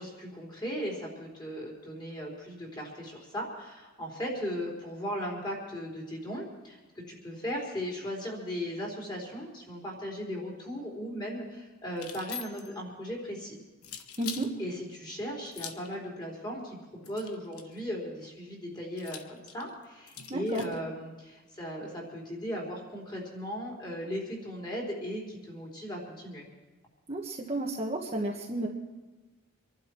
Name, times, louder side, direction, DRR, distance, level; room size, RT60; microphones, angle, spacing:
voice 1, 0.0-13.6 14.6-26.4, equal, 20° left, -2 dB, 4.2 m, -37 dB
sound 1, 11.9-12.8 13.8-14.5 15.5-15.9 17.0-17.8 19.0-20.8, left 8 dB, 85° left, 1.2 m, -43 dB
voice 2, 14.2-14.5 20.3-20.6 27.1-28.7, right 2 dB, 30° right, -1 dB, 1.5 m, -32 dB
26.0 x 11.5 x 4.6 m, 1.2 s
head